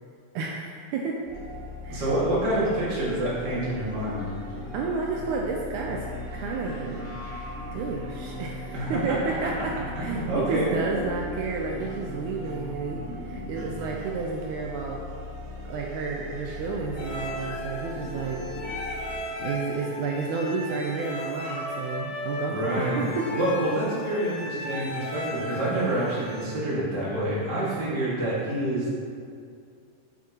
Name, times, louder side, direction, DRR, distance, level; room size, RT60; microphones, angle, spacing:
voice 1, 0.3-1.2 1.8-2.1 4.7-6.1 6.3-7.1 7.7-15.1 15.6-18.4 19.4-23.3, right 4 dB, 85° right, -1 dB, 1.7 m, -31 dB
sound 1, 1.3-19.2, left 1 dB, 65° right, 3.5 m, -38 dB
voice 2, 1.9-4.3 8.7-9.0 10.0-10.7 22.5-28.9, right 1 dB, 35° right, -8 dB, 2.0 m, -27 dB
sound 2, 17.0-26.5, left 1 dB, 70° left, 3.0 m, -36 dB
11.0 x 6.0 x 2.9 m, 2.3 s
omnidirectional pair, 4.2 m